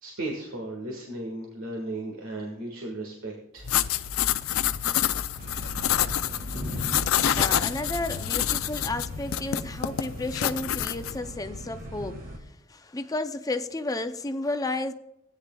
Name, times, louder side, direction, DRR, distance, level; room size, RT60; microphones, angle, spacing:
voice 1, 0.0-4.0, right 2 dB, 85° right, 1.7 m, -36 dB
sound 1, 3.5-8.9, left 1 dB, 20° right, 2.3 m, -41 dB
sound 2, 3.6-11.2, left 11 dB, 85° left, 0.5 m, -27 dB
sound 3, 5.4-12.4, equal, 45° right, 1.8 m, -39 dB
voice 2, 7.4-14.9, left 2 dB, 15° left, 0.5 m, -32 dB
17.0 x 9.5 x 2.3 m
head